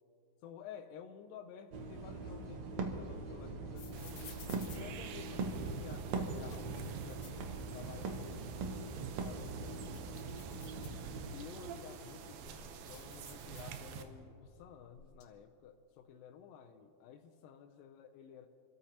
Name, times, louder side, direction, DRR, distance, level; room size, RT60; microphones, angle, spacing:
voice 1, 0.4-4.4 4.8-6.8 7.1-8.8 9.2-10.4 11.3-12.4 12.8-18.5, left 8 dB, 80° left, 3 dB, 2.3 m, -53 dB
sound 1, 1.7-11.5, right 3 dB, 65° right, 1.9 m, -42 dB
sound 2, 2.2-5.7 6.2-8.1 8.4-8.5 9.0-11.4 12.0-14.2 14.4-15.2, left 6 dB, 65° left, 1.7 m, -58 dB
sound 3, 3.9-14.0, right 6 dB, 85° right, 2.7 m, -47 dB
28.5 x 13.0 x 2.9 m, 2.7 s
omnidirectional pair, 4.1 m